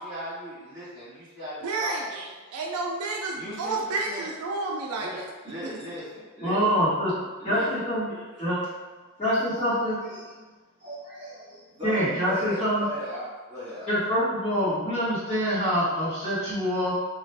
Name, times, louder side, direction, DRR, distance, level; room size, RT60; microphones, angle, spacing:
voice 1, 0.0-2.4 3.3-4.3 4.9-6.6 7.1-7.7 8.2-8.5 9.0-9.1 9.5-10.5 10.8-13.9 14.4-14.5, equal, 35° right, -12 dB, 1.1 m, -39 dB
voice 2, 1.6-2.3 2.5-5.3 5.6-5.8, right 3 dB, 90° right, 0 dB, 0.4 m, -30 dB
voice 3, 6.4-7.1 7.4-8.6 9.2-10.0 11.8-12.9 13.9-16.9, equal, 25° left, -13 dB, 1.3 m, -25 dB
2.4 x 2.3 x 3.2 m, 1.3 s
head